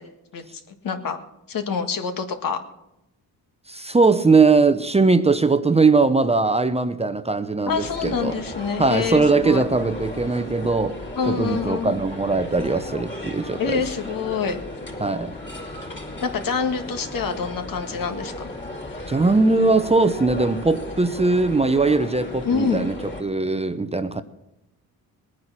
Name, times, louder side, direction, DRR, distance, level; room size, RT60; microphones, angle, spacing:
voice 1, 0.3-1.2 1.5-2.6 7.7-9.6 11.2-11.9 13.6-14.6 16.2-18.5 22.4-22.8, left 5 dB, 65° left, 1.8 m, -26 dB
voice 2, 3.7-8.4 8.8-11.0 11.3-13.8 15.0-15.3 19.1-24.2, right 3 dB, 15° right, 0.7 m, -20 dB
sound 1, 7.7-23.2, left 1 dB, 30° left, 3.8 m, -35 dB
20.0 x 9.3 x 6.1 m
cardioid pair, 90°, 37 cm